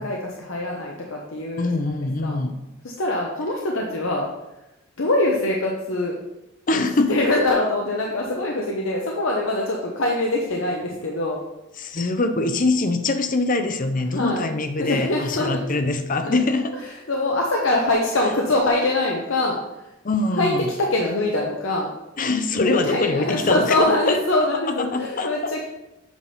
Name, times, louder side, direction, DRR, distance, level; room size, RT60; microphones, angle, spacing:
voice 1, 0.0-2.0 2.2-2.4 2.8-4.3 5.0-6.1 6.7-11.4 14.1-14.5 14.8-15.8 16.2-16.5 16.8-19.6 20.4-20.5 20.8-21.9 22.6-25.6, left 2 dB, 65° left, -1 dB, 0.9 m, -23 dB
voice 2, 1.6-2.6 6.7-7.2 11.8-16.7 20.0-20.7 22.2-23.7 24.1-24.2 24.8-25.5, left 3 dB, 40° left, 8 dB, 0.6 m, -23 dB
8.2 x 3.5 x 5.5 m, 0.94 s
head